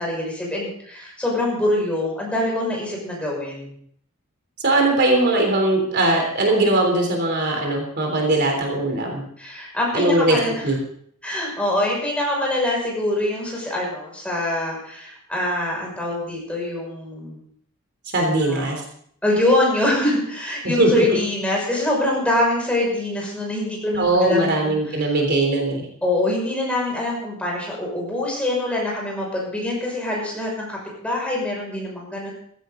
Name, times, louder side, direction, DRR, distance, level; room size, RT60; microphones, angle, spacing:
voice 1, 0.0-3.7 9.4-10.7 11.2-17.4 18.4-18.7 19.2-25.2 26.0-32.3, left 1 dB, 5° left, -3 dB, 5.9 m, -24 dB
voice 2, 4.6-9.2 9.9-10.4 10.6-10.8 18.1-18.8 20.6-21.2 24.0-25.9, right 2 dB, 50° right, 2 dB, 3.5 m, -20 dB
16.0 x 15.5 x 3.9 m, 0.64 s
head